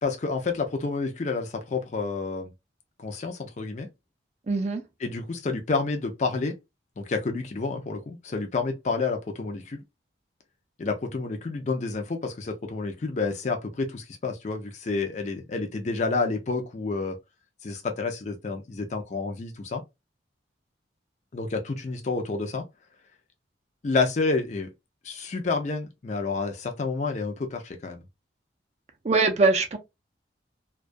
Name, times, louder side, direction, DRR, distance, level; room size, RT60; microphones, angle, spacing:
voice 1, 0.0-2.5 3.0-3.9 5.0-6.5 7.0-9.8 10.8-17.2 17.6-19.8 21.3-22.6 23.8-24.7 25.0-28.0, left 4 dB, 40° left, 0.4 m, -29 dB
voice 2, 4.5-4.8 29.0-29.8, right 3 dB, 35° right, 0.4 m, -22 dB
2.2 x 2.2 x 2.4 m
head